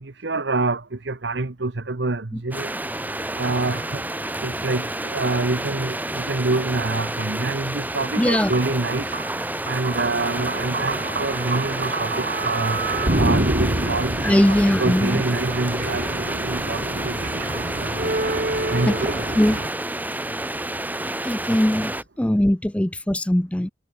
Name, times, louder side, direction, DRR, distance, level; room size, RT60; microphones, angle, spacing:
voice 1, 0.0-2.7 3.4-4.0 4.4-9.1 9.7-12.8 13.2-14.1 14.4-17.1 17.8-17.9 18.7-19.2, right 2 dB, 65° right, 1.1 m, -26 dB
sound 1, 2.5-22.0, right 1 dB, 10° right, 4.3 m, -29 dB
sound 2, 8.1-19.7, right 2 dB, 45° right, 2.8 m, -27 dB
voice 2, 8.2-8.5 14.2-15.2 18.9-19.0 19.3-19.6 21.2-23.7, left 1 dB, 5° left, 0.5 m, -20 dB
head